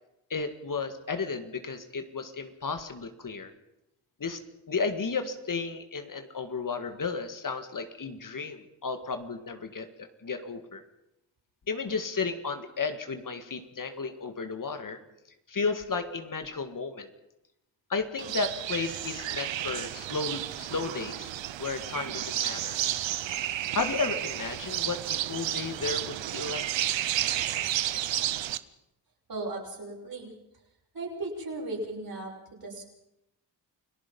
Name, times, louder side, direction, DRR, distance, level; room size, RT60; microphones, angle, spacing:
voice 1, 0.3-3.5 4.2-4.4 4.7-10.8 11.7-15.0 15.5-17.1 17.9-21.3 21.6-22.8 23.7-26.7, left 4 dB, 45° left, 8 dB, 2.0 m, -33 dB
sound 1, 18.2-28.6, right 12 dB, 85° right, 0.9 m, -32 dB
voice 2, 29.3-30.3 30.9-32.8, right 2 dB, 55° right, -1 dB, 7.2 m, -36 dB
29.5 x 18.0 x 5.5 m, 0.86 s
cardioid pair, 75°, 43 cm